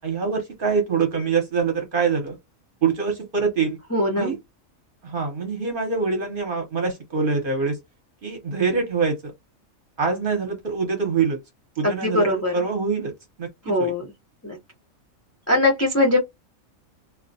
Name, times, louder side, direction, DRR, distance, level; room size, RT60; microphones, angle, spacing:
voice 1, 0.0-2.4 2.8-3.8 4.2-4.4 5.0-7.8 8.2-9.3 10.0-11.4 11.8-12.3 12.5-13.1 13.4-13.9, right 5 dB, 50° right, 0.8 m, -24 dB
voice 2, 3.9-4.4 11.8-12.5 13.6-14.1 14.4-14.6 15.5-16.2, left 1 dB, 25° left, 0.3 m, -21 dB
2.3 x 2.1 x 2.6 m
omnidirectional pair, 1.5 m